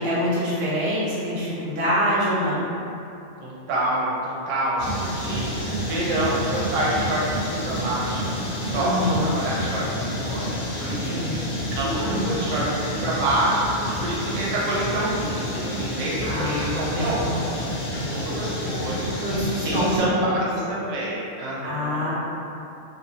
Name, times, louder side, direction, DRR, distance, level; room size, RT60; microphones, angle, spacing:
voice 1, 0.0-2.7 8.7-9.3 11.1-11.4 12.0-12.2 16.2-17.4 19.2-20.4 21.6-22.1, equal, 50° right, -10 dB, 0.8 m, -25 dB
voice 2, 3.4-5.4 5.8-8.4 8.7-20.1 20.4-22.1, right 1 dB, 85° right, -6 dB, 0.9 m, -27 dB
sound 1, 4.8-20.0, equal, 65° left, 0.4 m, -29 dB
2.2 x 2.1 x 2.7 m, 2.7 s
omnidirectional pair, 1.2 m